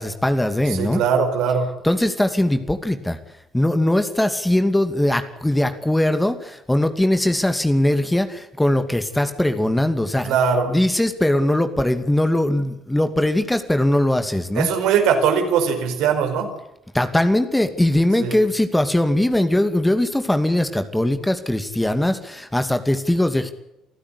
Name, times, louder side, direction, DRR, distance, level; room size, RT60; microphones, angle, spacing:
voice 1, 0.0-1.0 1.8-3.2 3.5-10.4 10.7-14.7 16.9-23.5, left 1 dB, 10° left, 9 dB, 2.6 m, -20 dB
voice 2, 0.7-1.7 10.2-10.8 14.5-16.5 18.2-18.4, right 6 dB, 65° right, 5 dB, 4.7 m, -20 dB
28.0 x 15.5 x 8.5 m, 0.87 s
figure-of-eight pair, 50°, 0 cm